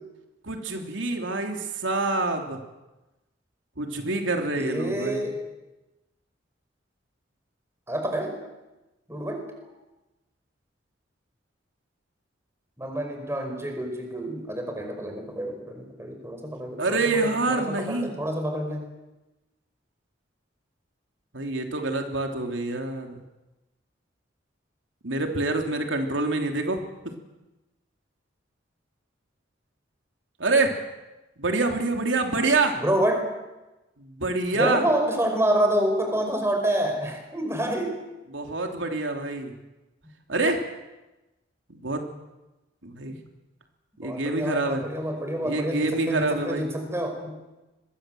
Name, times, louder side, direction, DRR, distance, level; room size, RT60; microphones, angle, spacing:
voice 1, 0.4-2.6 3.8-5.3 16.8-18.2 21.3-23.2 25.0-26.8 30.4-30.8 31.4-32.8 34.0-34.8 38.3-39.5 40.3-40.6 41.8-42.1 42.8-43.1 44.0-44.8 45.4-46.7, right 2 dB, 85° right, 4 dB, 3.0 m, -26 dB
voice 2, 4.5-5.4 7.9-8.3 9.1-9.4 12.8-18.8 32.8-33.3 34.5-38.0 43.1-43.2 44.0-47.4, right 1 dB, 15° right, 4 dB, 5.2 m, -28 dB
26.0 x 22.0 x 7.8 m, 1.0 s
head